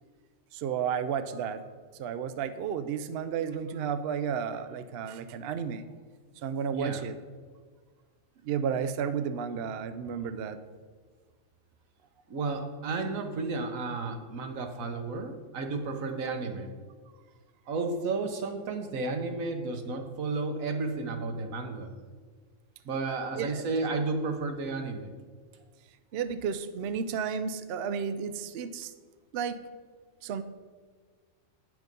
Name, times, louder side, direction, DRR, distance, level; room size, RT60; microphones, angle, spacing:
voice 1, 0.5-1.6 2.0-5.9 6.4-7.2 8.4-10.6 23.3-23.7 26.1-28.9 29.3-29.6 30.2-30.4, right 7 dB, 65° right, 11 dB, 0.7 m, -32 dB
voice 2, 6.7-7.0 12.3-16.7 17.7-21.9 22.8-25.1, right 3 dB, 85° right, 5 dB, 1.4 m, -32 dB
8.8 x 6.2 x 5.2 m, 1.5 s
omnidirectional pair, 1.4 m